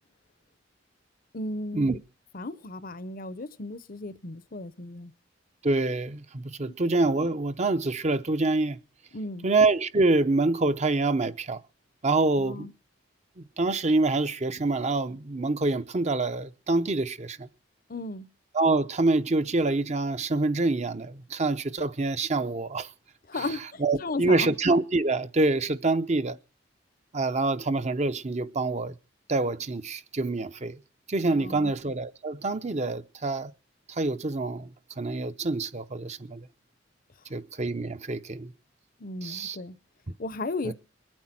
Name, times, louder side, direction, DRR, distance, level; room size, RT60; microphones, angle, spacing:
voice 1, 1.3-2.0 2.3-5.1 6.6-6.7 9.1-9.5 12.4-12.7 17.9-18.3 23.3-24.5 31.3-31.7 39.0-39.8 40.2-40.7, left 2 dB, 50° left, 0.8 m, -35 dB
voice 2, 5.6-8.8 9.4-11.6 12.0-12.7 13.4-17.5 18.5-22.9 23.4-23.5 23.8-26.4 27.1-28.9 29.3-30.8 31.1-33.5 33.9-36.5 37.3-38.5 39.2-39.6 40.6-40.7, right 3 dB, 35° right, 0.8 m, -26 dB
22.0 x 8.9 x 5.9 m
head